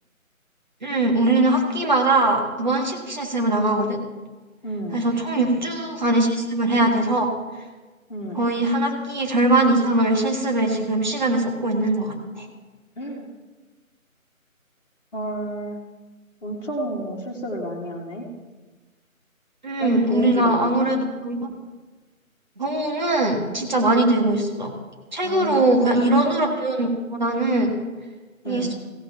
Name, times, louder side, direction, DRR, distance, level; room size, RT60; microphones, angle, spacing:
voice 1, 0.8-4.0 4.9-7.3 8.3-12.5 19.6-21.4 22.6-24.7 25.1-26.9 27.2-27.7 28.4-28.7, right 2 dB, 35° right, 1 dB, 1.6 m, -21 dB
voice 2, 4.6-5.1 8.1-8.5 13.0-13.3 15.1-15.8 16.4-18.3 19.8-20.9 25.2-25.9 28.4-28.8, equal, 40° left, -5 dB, 1.5 m, -30 dB
16.0 x 5.8 x 5.6 m, 1.3 s
figure-of-eight pair, 160°, 42 cm